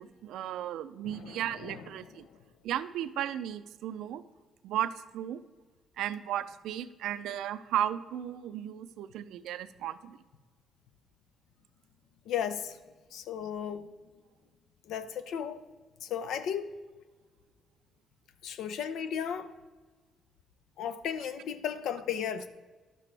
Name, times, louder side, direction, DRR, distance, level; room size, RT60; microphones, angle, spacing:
voice 1, 0.0-2.3 2.6-4.2 4.6-5.4 6.0-10.2, right 11 dB, 85° right, 0.4 m, -35 dB
voice 2, 1.0-2.1 12.3-12.8 13.1-13.9 14.9-15.6 16.0-16.7 18.4-19.6 20.8-22.5, left 8 dB, 80° left, 0.6 m, -35 dB
11.0 x 7.5 x 3.3 m
cardioid pair, 90°, 0 cm